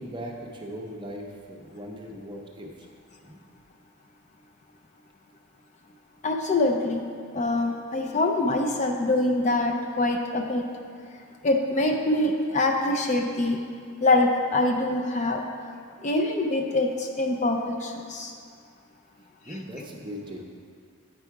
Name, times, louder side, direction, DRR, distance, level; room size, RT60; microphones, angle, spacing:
voice 1, 0.0-2.9 3.2-3.4 19.4-20.4, equal, 20° right, 0 dB, 0.6 m, -39 dB
voice 2, 6.2-7.1 7.3-10.6 11.4-13.6 14.0-15.4 16.0-18.3, left 2 dB, 30° left, 2 dB, 0.4 m, -24 dB
8.9 x 4.7 x 4.6 m, 2.2 s
head